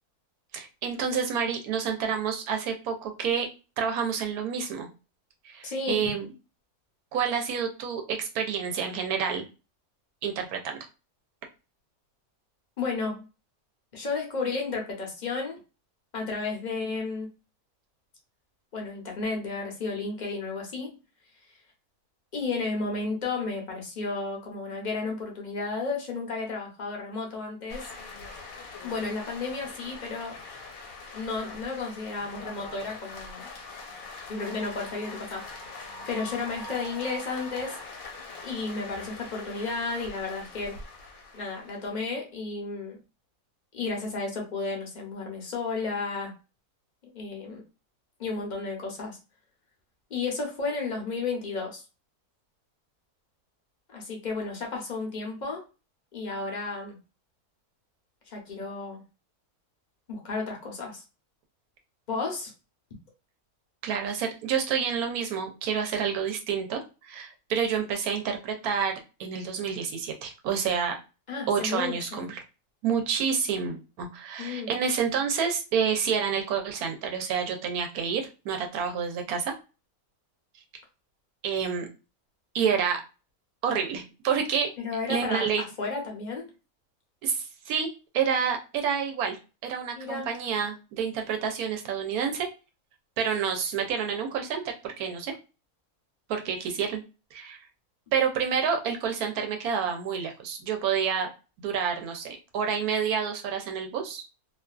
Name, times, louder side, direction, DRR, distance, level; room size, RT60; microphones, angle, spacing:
voice 1, 0.5-3.5 3.8-4.9 5.4-6.3 7.1-9.4 10.2-10.9 63.8-68.9 69.2-71.0 71.5-72.4 72.8-79.5 81.4-81.9 82.5-83.0 83.6-84.7 85.1-85.6 87.2-92.5 93.2-95.3 96.3-97.0 97.3-97.6 98.1-101.3 101.6-104.2, right 7 dB, 85° right, 4 dB, 1.1 m, -29 dB
voice 2, 5.6-6.0 12.8-13.2 13.9-15.6 16.1-17.3 18.7-21.0 22.3-27.9 28.8-30.4 31.1-33.5 34.3-37.8 38.4-40.8 41.3-43.0 43.7-46.3 47.1-47.6 48.2-49.2 50.1-51.8 53.9-55.6 56.1-57.0 58.3-59.0 60.1-61.0 62.1-62.5 71.3-72.3 74.4-74.7 84.8-85.5 85.8-86.5 90.0-90.3, left 4 dB, 45° left, 0 dB, 0.6 m, -33 dB
sound 1, 27.7-42.0, left 3 dB, 70° left, 1.1 m, -43 dB
2.6 x 2.4 x 2.2 m, 0.31 s
omnidirectional pair, 1.6 m